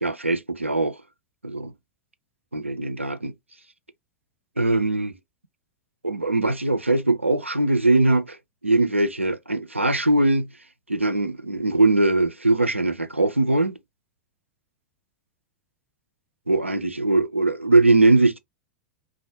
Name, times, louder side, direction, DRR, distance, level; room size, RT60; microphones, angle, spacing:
voice 1, 0.0-1.0 1.4-1.7 2.5-3.3 4.6-5.1 6.0-8.4 8.6-10.5 10.9-13.8 16.5-18.4, right 2 dB, 90° right, 0.3 m, -21 dB
2.1 x 2.1 x 2.7 m
figure-of-eight pair, 90°, 7 cm